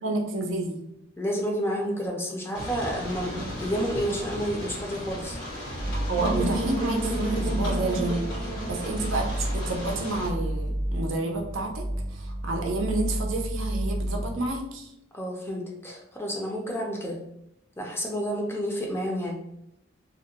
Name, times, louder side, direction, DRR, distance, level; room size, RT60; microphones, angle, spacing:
voice 1, 0.0-0.8 3.2-3.5 6.1-14.9, right 2 dB, 80° right, 1 dB, 0.5 m, -30 dB
voice 2, 1.2-5.4 15.1-17.2 17.8-19.4, equal, 10° left, -1 dB, 0.4 m, -30 dB
sound 1, 2.5-10.3, equal, 90° left, 1.1 m, -37 dB
sound 2, 5.8-14.5, right 1 dB, 70° left, 0.7 m, -31 dB
sound 3, 6.2-10.1, right 2 dB, 35° right, 0.6 m, -32 dB
2.4 x 2.1 x 2.8 m, 0.82 s
head